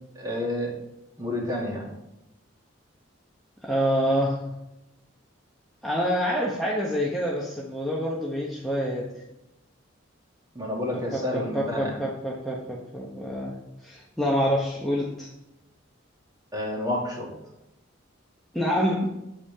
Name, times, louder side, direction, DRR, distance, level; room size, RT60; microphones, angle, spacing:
voice 1, 0.1-0.7 1.2-1.9 10.5-11.9 16.5-17.3, left 1 dB, 20° right, -3 dB, 2.6 m, -29 dB
voice 2, 3.6-4.5 5.8-9.1 11.1-13.6 13.8-15.3 18.5-19.1, equal, ahead, -5 dB, 1.2 m, -27 dB
8.7 x 8.4 x 3.7 m, 0.90 s
head